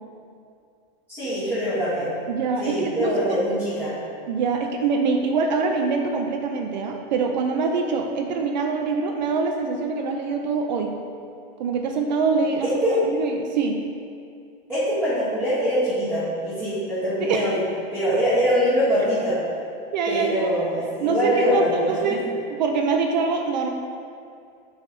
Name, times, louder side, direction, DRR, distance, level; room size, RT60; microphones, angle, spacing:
voice 1, 1.1-2.1 2.6-3.9 12.6-13.0 14.7-17.6 17.9-19.4 20.1-22.2, equal, 5° right, -16 dB, 1.5 m, -23 dB
voice 2, 2.3-3.4 4.3-10.9 11.6-13.8 17.2-17.5 19.9-20.5 21.0-22.2 22.5-23.7, right 4 dB, 50° right, 3 dB, 0.5 m, -24 dB
7.9 x 3.3 x 5.2 m, 2.4 s
supercardioid pair, 180°, 30 cm